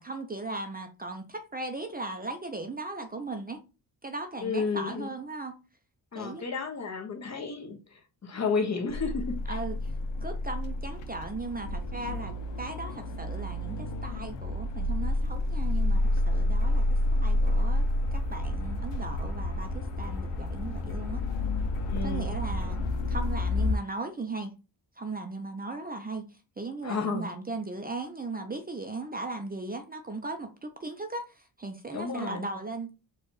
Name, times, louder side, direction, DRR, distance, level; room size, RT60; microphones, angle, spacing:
voice 1, 0.0-3.6 4.0-5.5 6.1-6.4 9.5-9.9 10.2-17.8 18.1-21.2 22.0-22.8 23.1-24.5 25.0-32.9, right 3 dB, 20° right, 0.6 m, -37 dB
voice 2, 4.4-5.1 6.1-9.6 21.9-22.4 26.8-27.3 31.9-32.5, left 5 dB, 40° left, 1.0 m, -32 dB
sound 1, 8.9-23.7, left 1 dB, 90° left, 0.7 m, -29 dB
sound 2, 16.0-22.8, left 4 dB, 65° left, 1.9 m, -54 dB
4.4 x 2.4 x 4.8 m
wide cardioid pair, 125°, 42 cm